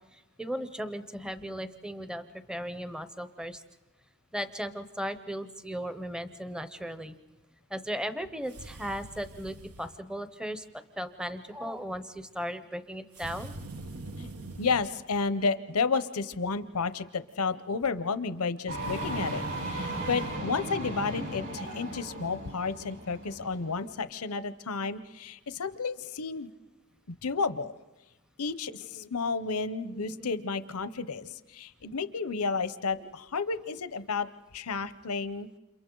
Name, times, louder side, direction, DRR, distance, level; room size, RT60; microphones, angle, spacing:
voice 1, 0.4-3.6 4.3-7.2 7.7-10.6 11.0-13.5 29.9-30.3 33.0-33.1, equal, 5° right, 11 dB, 0.7 m, -36 dB
sound 1, 8.5-10.0 13.1-14.9 18.8-20.4, right 2 dB, 85° right, 1.2 m, -43 dB
voice 2, 14.6-26.5 27.2-27.7 28.4-34.3 34.5-35.5, left 4 dB, 80° left, 13 dB, 0.8 m, -31 dB
sound 2, 18.7-23.9, right 1 dB, 60° right, 8.0 m, -36 dB
30.0 x 27.5 x 3.9 m, 1.1 s
head